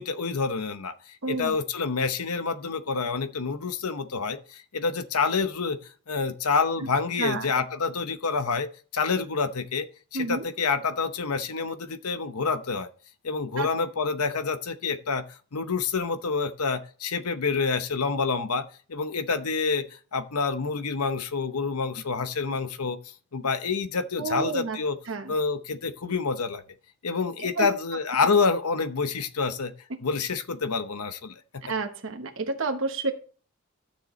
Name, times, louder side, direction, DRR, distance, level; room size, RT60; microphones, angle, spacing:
voice 1, 0.0-5.8 6.1-9.9 10.1-12.9 13.2-15.2 15.5-18.6 18.9-23.0 23.3-25.0 25.3-26.6 27.0-29.7 30.0-31.3, left 4 dB, 90° left, 0.9 m, -27 dB
voice 2, 1.2-1.6 7.2-7.5 10.1-10.4 13.6-13.7 24.2-24.8 25.1-25.4 27.4-27.7 31.7-33.1, right 3 dB, 65° right, 1.1 m, -30 dB
13.0 x 6.7 x 3.1 m
head